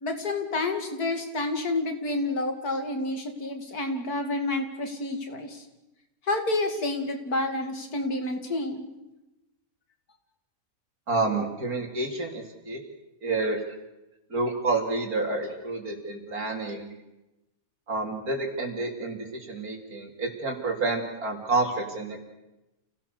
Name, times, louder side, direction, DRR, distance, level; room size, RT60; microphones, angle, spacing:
voice 1, 0.0-5.6 6.3-8.9, left 2 dB, 90° left, 5 dB, 3.1 m, -29 dB
voice 2, 11.1-12.8 13.2-13.6 14.3-16.9 17.9-22.3, right 3 dB, 75° right, 2 dB, 3.7 m, -29 dB
29.0 x 17.0 x 6.9 m, 0.98 s
omnidirectional pair, 1.6 m